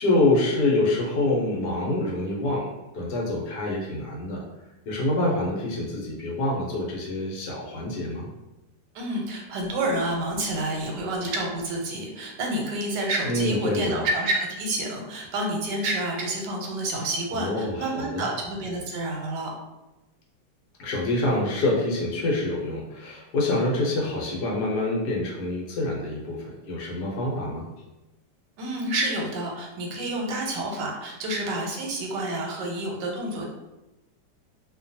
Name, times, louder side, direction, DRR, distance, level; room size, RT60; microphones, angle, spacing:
voice 1, 0.0-2.7 2.9-4.4 4.9-8.3 13.2-14.1 17.3-18.3 20.8-27.7, left 2 dB, 75° left, -3 dB, 1.3 m, -26 dB
voice 2, 8.9-19.5 28.6-33.5, right 1 dB, 85° right, 0 dB, 1.2 m, -29 dB
2.9 x 2.2 x 2.6 m, 1.0 s
omnidirectional pair, 1.8 m